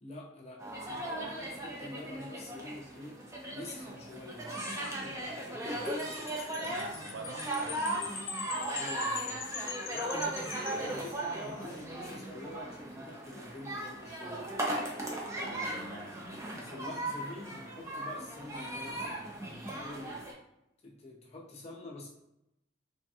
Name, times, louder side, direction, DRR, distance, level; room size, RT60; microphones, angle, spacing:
voice 1, 0.0-3.2 3.5-5.9 8.7-9.4 9.9-14.5 16.5-20.2 20.8-22.1, left 1 dB, 35° left, -2 dB, 0.6 m, -47 dB
sound 1, 0.6-20.3, right 1 dB, 15° right, 0.4 m, -37 dB
Wind chime, 5.8-11.5, left 7 dB, 85° left, 0.4 m, -43 dB
voice 2, 6.6-8.1 10.6-11.0 15.3-16.3, right 3 dB, 70° right, 2 dB, 0.5 m, -45 dB
3.3 x 2.2 x 2.7 m, 0.85 s
head